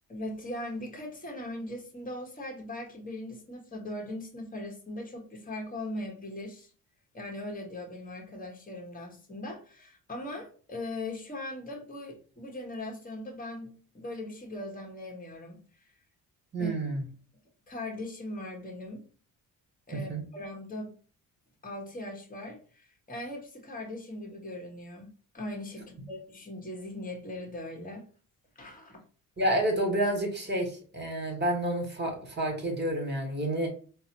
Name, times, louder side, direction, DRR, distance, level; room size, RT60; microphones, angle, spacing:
voice 1, 0.1-6.7 7.1-15.6 16.6-16.7 17.7-19.0 19.9-20.9 21.6-28.1 28.5-29.0, left 1 dB, 20° left, 2 dB, 1.2 m, -39 dB
voice 2, 16.5-17.0 20.1-20.2 29.4-33.7, right 1 dB, 25° right, 3 dB, 1.4 m, -29 dB
3.9 x 2.0 x 2.8 m, 0.40 s
hypercardioid pair, 50°, 45 cm